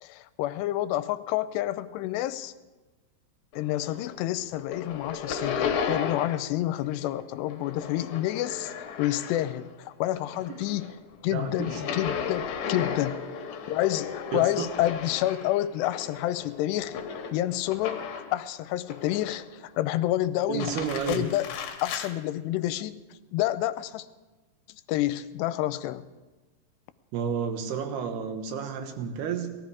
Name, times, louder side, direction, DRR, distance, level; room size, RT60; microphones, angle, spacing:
voice 1, 0.0-2.5 3.6-10.9 11.2-13.2 13.7-17.0 17.3-20.7 21.1-21.5 21.8-23.0 23.3-24.1 24.7-26.0, left 14 dB, 85° left, 14 dB, 2.7 m, -29 dB
sound 1, 3.5-4.2 4.5-6.5 6.8-9.7 10.1-18.4 18.9-19.6 20.4-22.1, left 7 dB, 65° left, 2.8 m, -35 dB
voice 2, 11.3-11.8 14.3-14.7 20.5-21.2 27.1-29.6, right 7 dB, 75° right, 6 dB, 3.1 m, -31 dB
19.5 x 13.0 x 4.8 m, 1.2 s
omnidirectional pair, 4.8 m